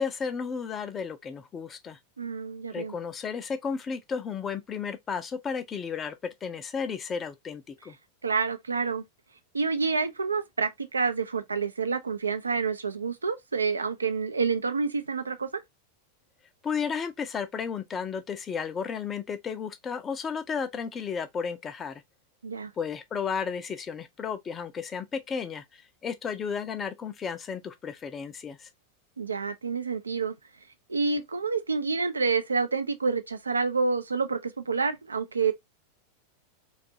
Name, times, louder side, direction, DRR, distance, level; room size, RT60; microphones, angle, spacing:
voice 1, 0.0-2.0 2.7-6.2 6.4-8.0 16.6-22.0 22.8-28.7, left 6 dB, 20° left, 0.4 m, -33 dB
voice 2, 2.2-2.9 8.2-9.0 9.5-15.6 22.4-22.7 29.2-30.3 30.9-35.5, right 4 dB, 75° right, 0.4 m, -28 dB
2.5 x 2.4 x 2.6 m
figure-of-eight pair, 90°, 0 cm